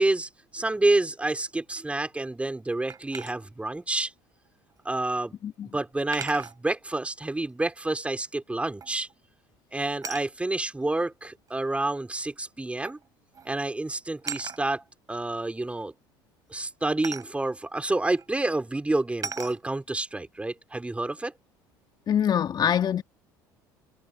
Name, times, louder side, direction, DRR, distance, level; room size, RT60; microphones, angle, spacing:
voice 1, 0.0-4.1 4.8-5.3 5.7-9.1 9.7-13.0 13.4-14.8 15.1-15.9 16.5-21.3, right 2 dB, 10° right, 4.2 m, -28 dB
sound 1, 2.9-3.4 4.9-5.0 6.1-6.6 8.8-9.1 10.0-10.3 11.5-11.6 12.8-13.1 13.3-13.6 14.2-14.6 17.0-17.3 18.1-18.2 19.2-19.6, right 6 dB, 35° right, 5.1 m, -37 dB
voice 2, 22.1-23.0, left 9 dB, 40° left, 1.7 m, -24 dB
hypercardioid pair, 70°, 11 cm